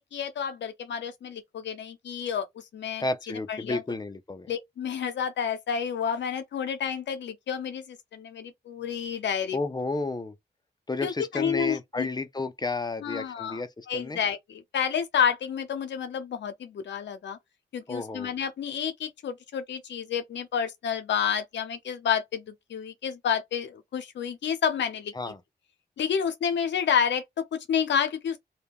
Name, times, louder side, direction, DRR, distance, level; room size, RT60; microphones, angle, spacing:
voice 1, 0.0-3.0 3.5-3.8 4.5-9.6 11.0-12.1 13.0-13.6 13.9-17.4 17.7-25.1 26.0-28.4, left 7 dB, 90° left, 0.6 m, -30 dB
voice 2, 3.0-4.5 9.5-10.4 10.9-14.2 17.9-18.3 25.1-25.4, left 3 dB, 25° left, 0.4 m, -32 dB
2.2 x 2.1 x 3.5 m
cardioid pair, 55°, 18 cm